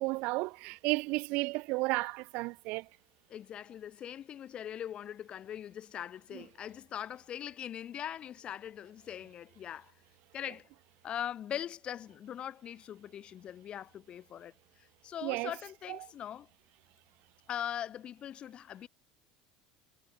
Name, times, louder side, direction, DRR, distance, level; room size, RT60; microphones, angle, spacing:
voice 1, 0.0-2.9 15.2-15.5, right 24 dB, 65° right, 7.2 m, -33 dB
voice 2, 3.3-9.9 10.3-10.7 11.0-16.5 17.5-18.9, left 10 dB, 35° left, 3.9 m, -41 dB
supercardioid pair, 135°, 3 cm